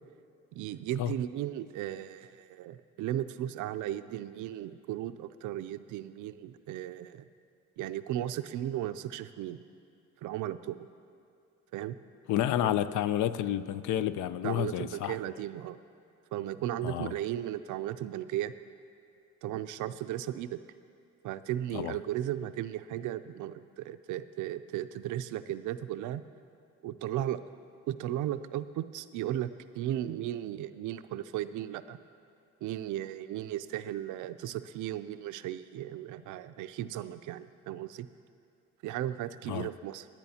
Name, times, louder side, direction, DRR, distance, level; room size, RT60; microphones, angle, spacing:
voice 1, 0.5-7.3 7.8-9.6 10.2-10.9 11.7-12.0 12.6-12.8 14.4-15.8 16.3-18.5 19.4-20.6 21.2-26.2 26.8-27.4 27.9-32.0 32.6-38.1 38.8-40.1, right 12 dB, 80° right, 12 dB, 0.5 m, -36 dB
voice 2, 12.3-15.2 16.8-17.1 21.7-22.0 39.5-39.7, left 11 dB, 80° left, 15 dB, 0.5 m, -30 dB
23.0 x 8.8 x 2.8 m, 2.4 s
cardioid pair, 90°, 30 cm